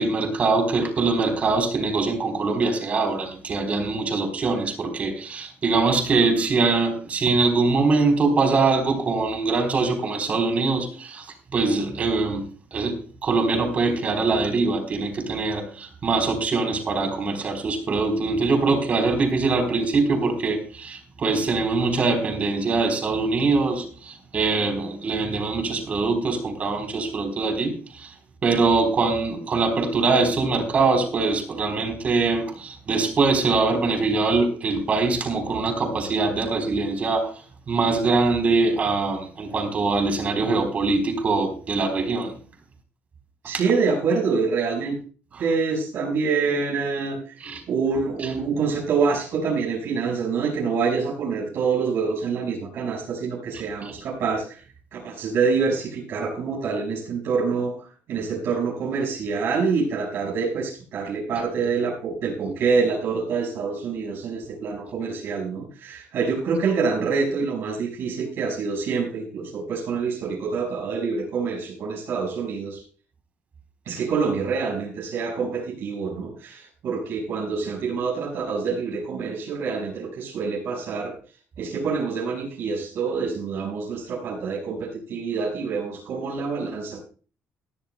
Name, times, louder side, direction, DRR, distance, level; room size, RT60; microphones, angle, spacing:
voice 1, 0.0-12.5 12.7-13.0 13.2-28.1 28.4-42.3 45.3-45.4 47.4-47.6 48.2-48.3 53.8-53.9, right 3 dB, 35° right, 5 dB, 3.8 m, -23 dB
voice 2, 43.4-44.9 45.4-47.4 47.7-54.6 54.9-72.8 73.9-81.1 81.6-87.0, right 5 dB, 65° right, -4 dB, 5.3 m, -26 dB
20.0 x 13.0 x 2.2 m, 0.40 s
cardioid pair, 160°, 4 cm